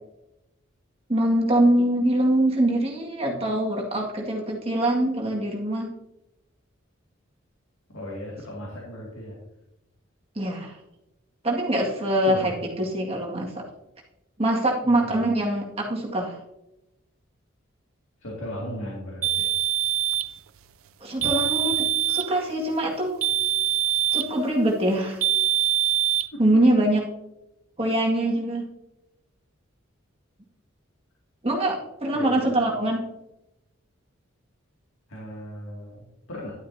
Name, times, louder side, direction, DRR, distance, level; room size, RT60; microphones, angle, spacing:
voice 1, 1.1-5.9 10.4-10.7 11.4-13.6 14.4-16.4 21.0-23.2 24.1-25.2 26.4-27.0 27.8-28.6 31.4-33.0, right 1 dB, 30° right, -2 dB, 2.0 m, -23 dB
voice 2, 7.9-9.4 12.3-12.6 14.8-15.3 18.2-19.5 21.2-21.3 26.3-26.4 32.1-32.5 35.1-36.5, equal, 75° left, -4 dB, 2.4 m, -37 dB
sound 1, 19.2-20.3 21.2-22.3 23.2-24.3 25.2-26.3, right 11 dB, 80° right, 0.5 m, -24 dB
11.0 x 9.4 x 2.8 m, 0.90 s
head